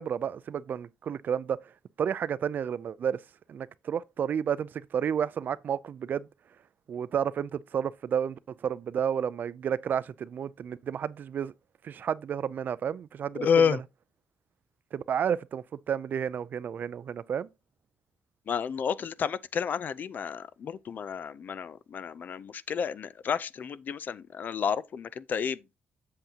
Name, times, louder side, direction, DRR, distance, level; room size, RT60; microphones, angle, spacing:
voice 1, 0.0-1.6 2.0-3.2 3.5-6.3 6.9-11.5 11.8-13.8 14.9-17.5, right 8 dB, 50° right, 0.4 m, -31 dB
voice 2, 13.4-13.8 18.5-25.6, left 7 dB, 45° left, 0.4 m, -30 dB
7.9 x 7.4 x 2.8 m
cardioid pair, 135°, 4 cm